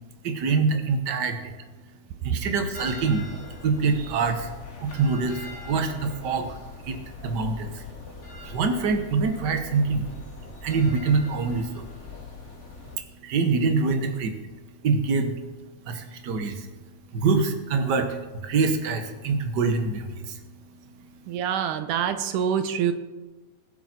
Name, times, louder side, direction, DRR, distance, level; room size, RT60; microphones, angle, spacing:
voice 1, 0.2-1.6 2.2-3.3 3.6-4.5 4.8-6.6 6.8-7.8 8.4-10.1 10.6-11.9 13.2-14.3 14.8-15.3 15.8-16.7 17.1-20.4 21.0-21.1, right 4 dB, 65° right, 6 dB, 1.0 m, -25 dB
sound 1, 2.7-13.0, left 2 dB, 30° left, 1.5 m, -41 dB
voice 2, 21.3-22.9, right 8 dB, 85° right, 9 dB, 2.4 m, -25 dB
21.0 x 7.5 x 4.4 m, 1.2 s
omnidirectional pair, 3.6 m